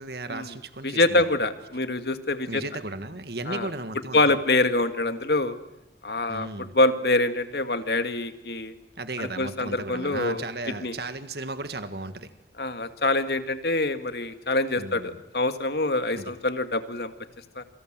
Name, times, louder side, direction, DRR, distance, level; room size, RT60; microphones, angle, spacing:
voice 1, 0.0-1.4 2.5-4.2 6.3-6.7 9.0-12.3 14.8-15.2 16.1-16.3, right 2 dB, 65° right, 10 dB, 1.8 m, -35 dB
voice 2, 0.8-2.6 3.5-3.7 4.1-5.6 6.0-8.7 9.2-10.4 10.8-10.9 12.6-17.1 17.6-17.7, left 2 dB, 65° left, 9 dB, 2.0 m, -25 dB
28.0 x 25.5 x 7.6 m, 0.84 s
head